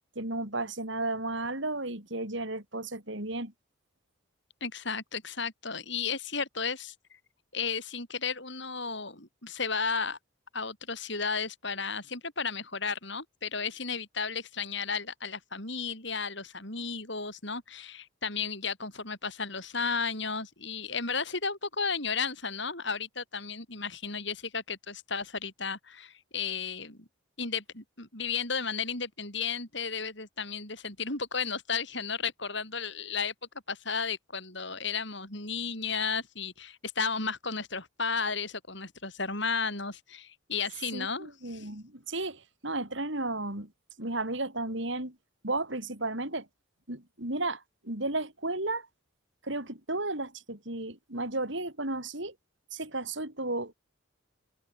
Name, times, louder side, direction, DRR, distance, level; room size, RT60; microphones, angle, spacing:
voice 1, 0.2-3.5 40.9-43.7 44.0-45.2 45.4-46.5 46.9-48.9 49.4-52.3 52.7-53.7, right 2 dB, 60° right, 5.4 m, -33 dB
voice 2, 4.6-6.9 7.5-10.2 10.5-27.1 27.4-33.3 33.7-41.7, left 5 dB, 55° left, 8.0 m, -33 dB
head